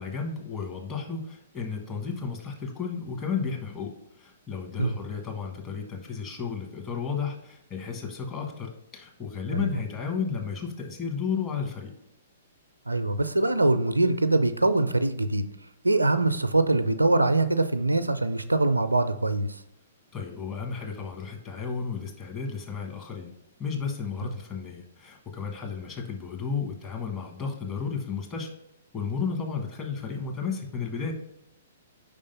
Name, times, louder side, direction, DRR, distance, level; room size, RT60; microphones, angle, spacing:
voice 1, 0.0-3.9 4.2-11.9 20.1-23.3 23.6-28.5 28.9-31.1, left 5 dB, 25° left, 1.4 m, -33 dB
voice 2, 12.9-15.4 15.8-19.5 24.2-24.3, right 2 dB, 85° right, 0.4 m, -23 dB
5.3 x 3.6 x 5.5 m
figure-of-eight pair, 115°, 0 cm